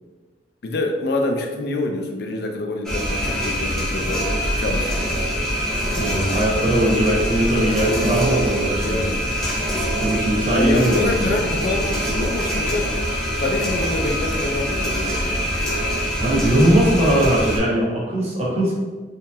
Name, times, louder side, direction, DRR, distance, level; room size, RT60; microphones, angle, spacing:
voice 1, 0.6-4.3 4.6-5.5 8.8-9.3 10.5-12.9 13.4-15.5, left 2 dB, 60° left, 3 dB, 0.4 m, -26 dB
sound 1, 2.9-17.6, equal, 5° left, 0.5 m, -24 dB
voice 2, 5.9-9.0 9.9-11.3 16.2-18.7, right 1 dB, 40° right, -4 dB, 0.8 m, -20 dB
3.0 x 2.7 x 2.3 m, 1.3 s
head